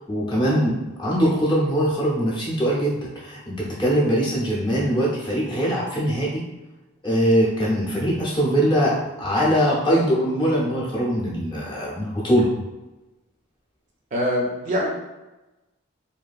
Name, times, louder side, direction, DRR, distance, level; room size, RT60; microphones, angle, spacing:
voice 1, 0.1-6.5 7.0-12.5, equal, 20° left, -6 dB, 0.6 m, -22 dB
voice 2, 14.1-14.9, equal, 35° right, -3 dB, 0.4 m, -23 dB
2.6 x 2.5 x 2.3 m, 1.1 s
head